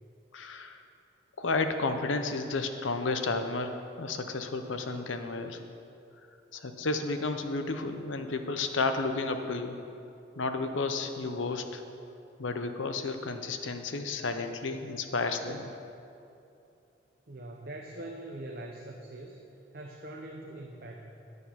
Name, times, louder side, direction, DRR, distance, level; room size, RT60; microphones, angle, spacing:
voice 1, 0.3-0.8 1.4-5.6 6.5-9.8 10.4-11.8 12.4-15.7, left 3 dB, 90° left, 7 dB, 0.8 m, -32 dB
voice 2, 17.3-19.4 19.7-21.1, right 1 dB, 50° right, 0 dB, 0.8 m, -42 dB
9.4 x 8.2 x 5.7 m, 2.7 s
head